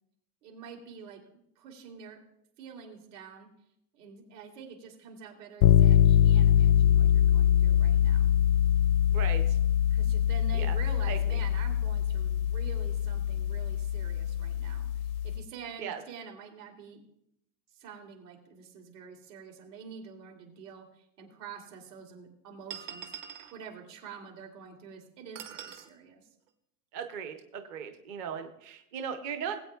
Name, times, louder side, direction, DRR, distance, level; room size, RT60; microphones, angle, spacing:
voice 1, 0.4-2.2 2.6-3.5 3.9-8.3 9.9-14.9 15.2-17.0 17.7-23.1 23.5-26.3, right 6 dB, 85° right, 1 dB, 3.1 m, -47 dB
sound 1, 5.6-15.4, left 10 dB, 70° left, 0.5 m, -24 dB
voice 2, 9.1-9.6 10.5-10.8 11.1-11.4 15.8-16.0 26.9-29.6, right 7 dB, 25° right, 6 dB, 0.5 m, -38 dB
sound 2, 20.7-20.8 21.7-21.8 22.7-23.6 25.4-25.9, right 8 dB, 50° right, 1.1 m, -42 dB
20.5 x 8.4 x 2.3 m, 0.77 s
supercardioid pair, 165°, 46 cm